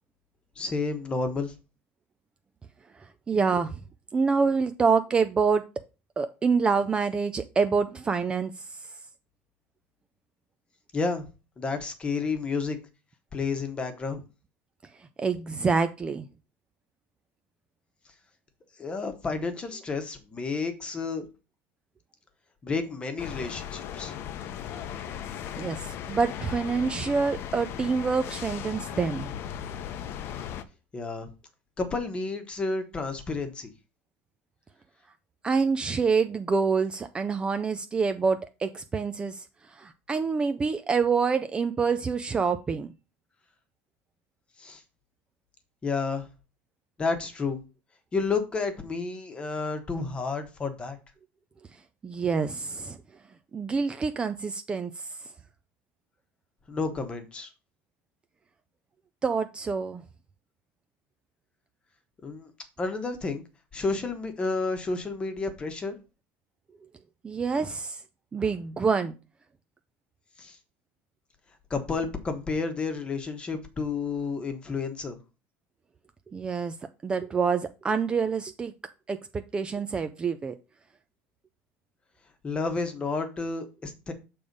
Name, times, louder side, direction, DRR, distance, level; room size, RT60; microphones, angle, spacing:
voice 1, 0.6-1.5 10.9-11.3 11.6-12.8 13.3-14.2 18.8-21.3 22.6-24.1 30.9-31.3 31.8-33.7 44.6-44.8 45.8-46.3 47.0-47.6 48.1-51.0 56.7-57.5 62.2-62.5 62.8-63.4 63.7-66.0 70.4-70.6 71.7-75.2 82.4-84.1, left 4 dB, 20° left, 8 dB, 1.1 m, -31 dB
voice 2, 3.3-3.8 4.1-5.6 6.2-8.7 15.2-16.2 25.6-29.3 35.4-42.9 52.0-53.0 53.5-55.1 59.2-60.0 67.2-68.0 68.3-69.1 76.3-76.7 77.0-78.7 79.1-80.5, right 5 dB, 15° right, 9 dB, 0.4 m, -26 dB
sound 1, 23.2-30.6, left 9 dB, 45° left, 0.7 m, -37 dB
6.8 x 3.5 x 5.2 m, 0.30 s
cardioid pair, 140°, 6 cm